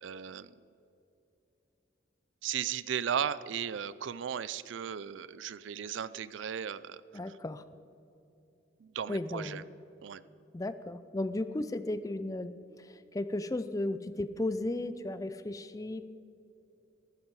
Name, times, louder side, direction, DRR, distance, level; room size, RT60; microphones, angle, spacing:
voice 1, 0.0-0.5 2.4-7.0 8.8-9.6 10.0-10.2, right 8 dB, 70° right, 17 dB, 0.4 m, -36 dB
voice 2, 7.1-7.6 9.1-9.6 10.5-16.0, left 2 dB, 15° left, 13 dB, 0.4 m, -35 dB
14.0 x 13.0 x 4.7 m, 2.8 s
head